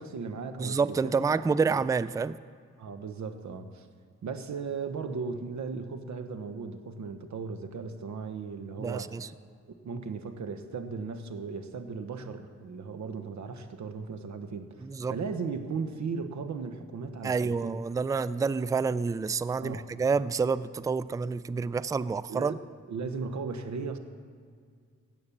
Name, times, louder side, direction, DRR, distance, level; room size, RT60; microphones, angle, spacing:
voice 1, 0.0-1.8 2.8-3.9 4.2-9.2 9.8-17.8 19.6-19.9 22.3-22.6 22.9-24.0, right 5 dB, 70° right, 8 dB, 1.2 m, -37 dB
voice 2, 0.6-2.4 8.8-9.3 14.8-15.2 17.2-22.6, right 5 dB, 10° right, 17 dB, 0.3 m, -28 dB
16.5 x 8.7 x 7.2 m, 2.1 s
cardioid pair, 95°, 30 cm